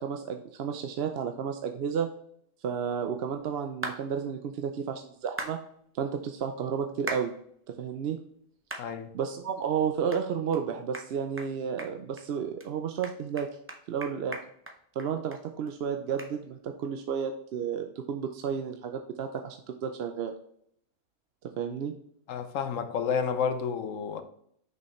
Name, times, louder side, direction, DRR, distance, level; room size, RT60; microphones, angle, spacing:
voice 1, 0.0-2.1 2.6-5.6 5.9-7.3 7.7-8.2 9.1-13.5 13.9-14.4 15.0-20.3 21.6-21.9, right 7 dB, 60° right, 0.7 m, -32 dB
sound 1, 3.8-4.0 5.4-5.6 7.1-7.3 7.8-7.9 8.7-8.9 9.3-9.4 10.1-10.2 10.5-10.6 10.9-11.1 11.4-11.5 11.8-12.2 12.6-12.7 13.0-15.4 15.7-15.8 16.2-16.3, right 1 dB, 15° right, 0.5 m, -38 dB
voice 2, 8.8-9.1 22.3-24.2, left 6 dB, 85° left, 1.1 m, -30 dB
6.3 x 5.4 x 3.1 m
omnidirectional pair, 1.3 m